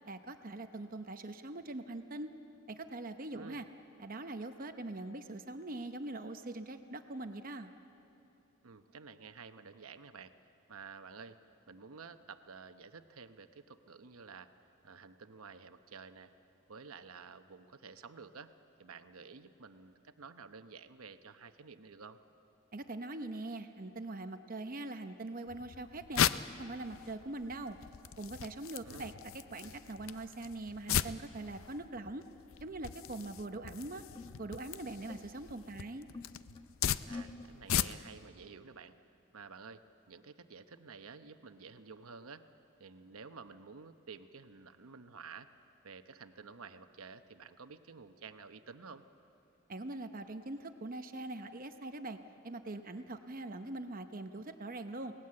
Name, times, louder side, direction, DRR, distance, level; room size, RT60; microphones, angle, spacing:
voice 1, 0.0-2.3 2.7-3.7 4.0-7.7 22.7-26.3 26.6-27.8 28.2-32.2 32.6-34.0 34.4-36.1 49.7-52.2 52.4-55.1, right 2 dB, 40° right, 7 dB, 0.8 m, -42 dB
voice 2, 3.3-3.7 8.6-10.3 10.7-11.4 11.7-14.5 14.8-16.3 16.7-18.5 18.8-22.2 28.8-29.2 37.1-39.0 39.3-42.5 42.8-45.5 45.8-49.0, right 5 dB, 85° right, 9 dB, 0.9 m, -51 dB
sound 1, 25.5-38.3, left 9 dB, 70° left, 0.5 m, -38 dB
sound 2, 32.5-32.8 33.5-33.6 34.1-35.5 35.9-36.7 37.1-37.5, left 3 dB, 25° left, 1.1 m, -48 dB
28.0 x 18.5 x 7.6 m, 2.9 s
head